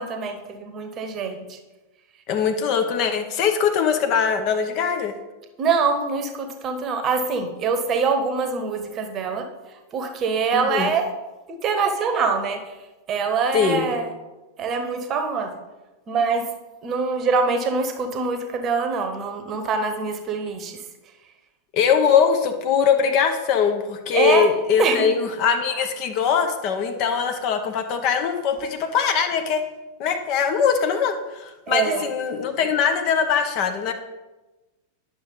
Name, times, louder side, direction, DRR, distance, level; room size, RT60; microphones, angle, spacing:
voice 1, 0.0-1.6 5.6-9.5 9.9-11.1 11.5-12.7 13.1-14.1 14.6-15.6 16.1-16.5 16.8-20.8 24.1-24.5 24.8-25.1 31.7-32.1, right 5 dB, 30° right, 7 dB, 1.0 m, -24 dB
voice 2, 2.3-5.1 10.5-10.9 13.5-13.9 21.7-29.6 30.0-33.9, left 7 dB, 40° left, 6 dB, 0.9 m, -21 dB
9.8 x 6.1 x 3.9 m, 1.1 s
figure-of-eight pair, 90°, 0 cm